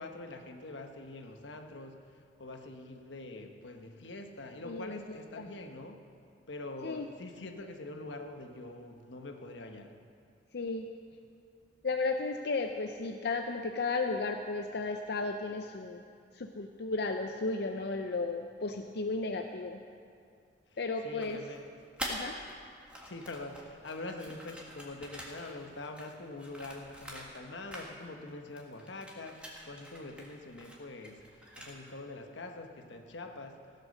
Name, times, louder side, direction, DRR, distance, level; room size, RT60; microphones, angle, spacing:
voice 1, 0.0-6.0 6.5-9.9 21.0-21.6 23.0-33.6, left 2 dB, 85° left, 5 dB, 1.1 m, -44 dB
voice 2, 4.6-5.5 6.8-7.1 10.5-10.9 11.8-16.0 16.3-19.8 20.8-21.4 22.1-22.4, left 3 dB, 65° left, 4 dB, 0.6 m, -34 dB
sound 1, 21.2-22.5 22.8-27.4 27.7-28.3 28.6-32.0, equal, 5° right, 1.7 m, -45 dB
16.0 x 8.3 x 6.5 m, 2.3 s
head